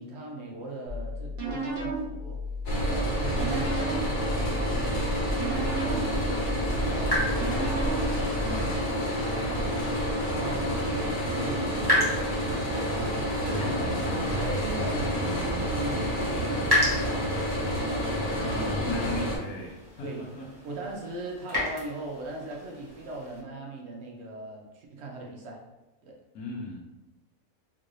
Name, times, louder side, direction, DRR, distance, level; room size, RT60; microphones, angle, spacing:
voice 1, 0.0-2.5 2.9-7.9 8.4-8.9 9.1-10.0 10.4-12.2 13.6-14.1 14.4-18.4 20.0-20.3 20.6-25.7 26.0-26.2, right 2 dB, 60° right, 0 dB, 0.7 m, -39 dB
sound 1, 0.9-8.8, right 1 dB, 45° right, 1.0 m, -34 dB
sound 2, 2.6-19.4, equal, 40° left, 0.9 m, -29 dB
sound 3, 5.6-23.4, left 1 dB, 15° right, 1.2 m, -35 dB
voice 2, 8.4-8.7 13.5-14.2 18.4-20.5 26.3-26.8, left 2 dB, 80° left, -2 dB, 1.2 m, -36 dB
3.7 x 2.5 x 3.1 m, 1.0 s
omnidirectional pair, 1.6 m